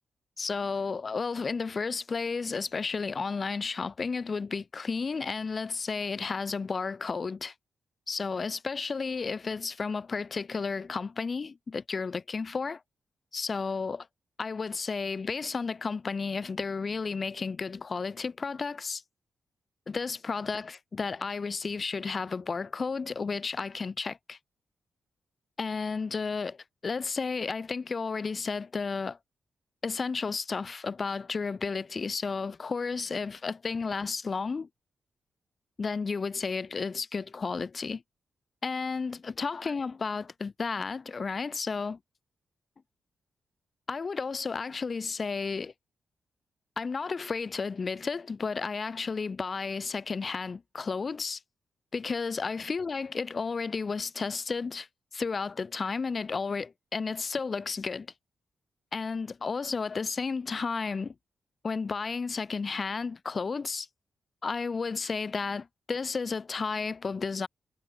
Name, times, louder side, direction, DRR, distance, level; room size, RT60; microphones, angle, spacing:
voice 1, 0.4-7.5 8.1-12.8 13.3-14.1 14.4-19.0 19.9-24.4 25.6-29.2 29.8-34.7 35.8-38.0 38.6-42.0 43.9-45.7 46.8-51.4 51.9-54.9 55.1-58.1 58.9-61.1 61.6-63.9 64.4-67.5, left 4 dB, 40° left, 5.2 m, -32 dB
cardioid pair, 95°, 0 cm